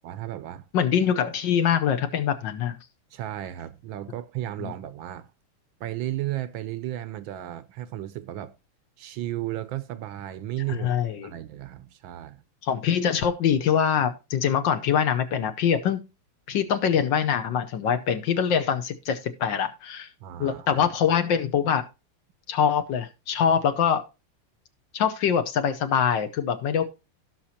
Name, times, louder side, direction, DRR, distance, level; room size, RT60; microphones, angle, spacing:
voice 1, 0.0-0.7 3.1-5.3 5.8-8.6 9.0-10.9 11.2-12.4 20.2-20.9, right 13 dB, 75° right, 1.3 m, -34 dB
voice 2, 0.7-2.7 4.6-4.7 10.7-11.3 12.6-16.0 16.5-20.1 20.4-21.8 22.5-24.0 24.9-26.8, left 8 dB, 65° left, 1.3 m, -24 dB
16.5 x 6.0 x 2.8 m
omnidirectional pair, 2.4 m